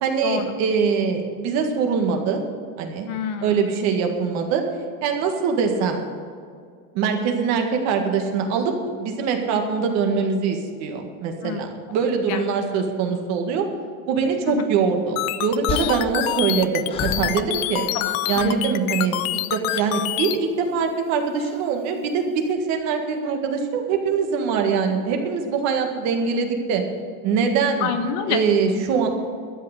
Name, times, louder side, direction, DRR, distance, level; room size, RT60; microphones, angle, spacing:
voice 1, 0.0-2.4 2.8-3.1 3.4-4.6 5.0-6.0 6.9-13.7 14.1-17.8 18.3-19.2 19.5-26.8 27.2-27.9 28.3-29.1, right 5 dB, 40° right, 4 dB, 1.8 m, -23 dB
voice 2, 3.1-3.6 11.4-11.7 12.3-12.4 14.5-14.6 17.9-18.7 27.8-28.4, left 8 dB, 40° left, 8 dB, 1.0 m, -27 dB
sound 1, 15.2-20.4, left 15 dB, 75° left, 0.7 m, -26 dB
sound 2, 15.7-18.0 18.2-18.7 19.7-20.0 21.4-21.6, left 6 dB, 15° left, 0.5 m, -33 dB
12.5 x 8.8 x 8.2 m, 2.2 s
cardioid pair, 175°, 40 cm